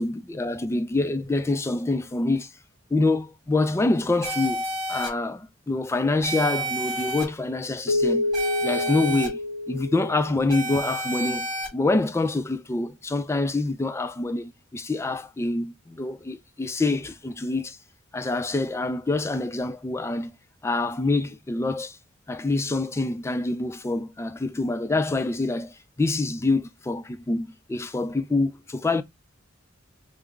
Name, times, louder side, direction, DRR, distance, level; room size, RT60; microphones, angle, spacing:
voice 1, 0.0-2.5 2.9-8.3 8.6-9.4 9.7-11.5 11.7-17.8 18.1-20.3 20.6-22.0 22.3-29.0, left 2 dB, 15° left, 0.3 m, -26 dB
sound 1, 4.2-5.1 6.2-7.2 8.3-9.3 10.5-11.7, right 2 dB, 25° right, 1.8 m, -30 dB
Keyboard (musical), 7.9-10.8, left 2 dB, 65° left, 0.5 m, -28 dB
3.5 x 2.0 x 3.3 m
head